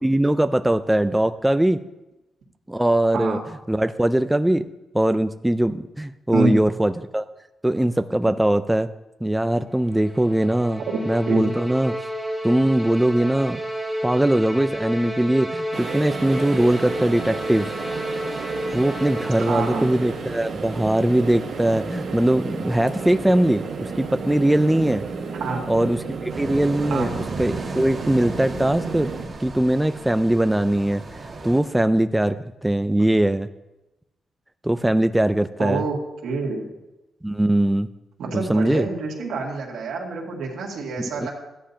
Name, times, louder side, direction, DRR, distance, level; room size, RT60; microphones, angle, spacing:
voice 1, 0.0-1.8 2.7-3.4 3.7-4.7 4.9-7.3 7.6-8.9 9.2-12.1 12.4-13.6 14.0-17.7 18.3-25.1 25.7-27.1 27.4-29.1 29.4-31.0 31.4-33.5 34.6-35.8 37.2-37.9 38.3-38.9 41.0-41.3, right 1 dB, 5° right, 9 dB, 0.3 m, -21 dB
sound 1, 9.7-20.3, equal, 15° left, 2.1 m, -32 dB
sound 2, 15.7-29.3, right 4 dB, 65° right, 1.3 m, -32 dB
voice 2, 19.4-20.0 25.4-25.7 26.9-27.1 35.6-36.0 36.2-36.7 38.2-41.3, right 3 dB, 85° right, 0 dB, 2.1 m, -26 dB
sound 3, 26.3-31.6, right 3 dB, 35° right, 1.6 m, -36 dB
15.0 x 10.0 x 2.8 m, 0.98 s
cardioid pair, 130°, 0 cm